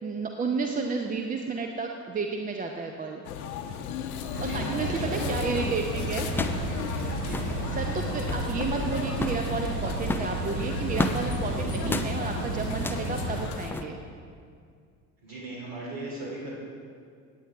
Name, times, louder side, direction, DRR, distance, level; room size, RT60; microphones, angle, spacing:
voice 1, 0.0-3.3 4.4-6.3 7.7-14.0, right 4 dB, 20° right, 3 dB, 0.7 m, -32 dB
sound 1, 3.2-13.7, left 8 dB, 65° left, 0.9 m, -36 dB
voice 2, 4.3-5.7 7.2-7.4 15.2-16.5, right 1 dB, 50° right, -5 dB, 2.8 m, -38 dB
sound 2, 4.3-13.5, right 3 dB, 80° right, 1.1 m, -32 dB
sound 3, 6.3-6.7 6.9-7.0 7.2-7.6 8.1-8.5 9.1-9.5 10.0-11.2 11.8-12.1 12.7-13.1 13.6-13.8, left 2 dB, 5° left, 0.3 m, -32 dB
17.0 x 8.9 x 3.5 m, 2.2 s
figure-of-eight pair, 60°, 46 cm